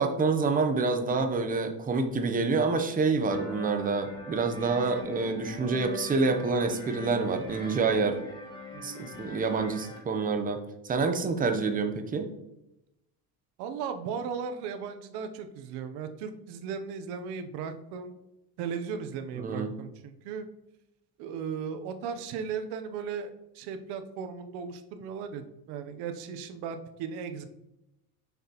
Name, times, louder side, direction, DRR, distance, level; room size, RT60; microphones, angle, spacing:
voice 1, 0.0-8.2 8.8-12.3 19.3-19.7, right 4 dB, 20° right, 6 dB, 0.8 m, -27 dB
sound 1, 3.3-10.0, left 2 dB, 10° left, 1.8 m, -43 dB
voice 2, 8.7-9.1 13.6-18.2 18.6-20.5 21.2-23.3 23.5-25.4 25.7-27.4, right 6 dB, 85° right, 8 dB, 0.8 m, -36 dB
7.0 x 5.8 x 2.9 m, 0.89 s
cardioid pair, 120°, 39 cm